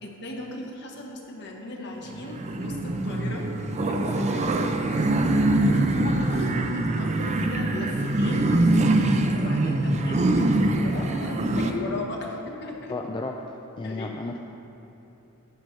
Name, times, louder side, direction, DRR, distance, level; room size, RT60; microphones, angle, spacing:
voice 1, 0.0-3.5 3.8-5.1 5.6-8.9 9.3-13.0 13.8-14.2, left 2 dB, 55° left, 0 dB, 1.3 m, -37 dB
sound 1, 2.1-11.7, right 2 dB, 30° right, 0.5 m, -23 dB
voice 2, 12.9-14.4, left 2 dB, 20° left, 2 dB, 0.3 m, -33 dB
12.0 x 8.4 x 3.2 m, 3.0 s
head